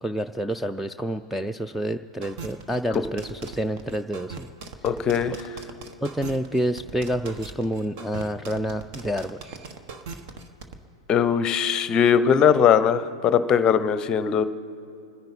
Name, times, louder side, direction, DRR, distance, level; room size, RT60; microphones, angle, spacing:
voice 1, 0.0-4.5 5.3-5.4 6.0-9.5, equal, ahead, 2 dB, 0.4 m, -28 dB
sound 1, 2.2-10.8, right 4 dB, 45° right, 1.3 m, -39 dB
voice 2, 4.8-5.3 11.1-14.5, left 7 dB, 25° left, 13 dB, 0.8 m, -20 dB
27.5 x 10.5 x 4.2 m, 2.8 s
figure-of-eight pair, 105°, 3 cm